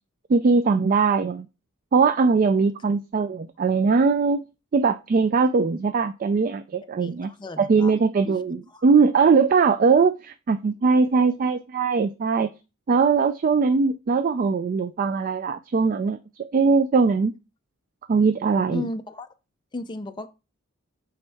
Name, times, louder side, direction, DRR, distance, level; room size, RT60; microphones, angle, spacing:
voice 1, 0.3-1.5 1.9-4.4 4.7-7.3 7.6-12.5 12.9-17.3 18.1-18.8, right 4 dB, 40° right, 0.3 m, -21 dB
voice 2, 7.0-7.9 8.3-8.4 8.7-8.8 11.1-11.2 18.7-19.3 19.7-20.3, left 2 dB, 20° left, 0.5 m, -35 dB
8.1 x 3.5 x 3.4 m
head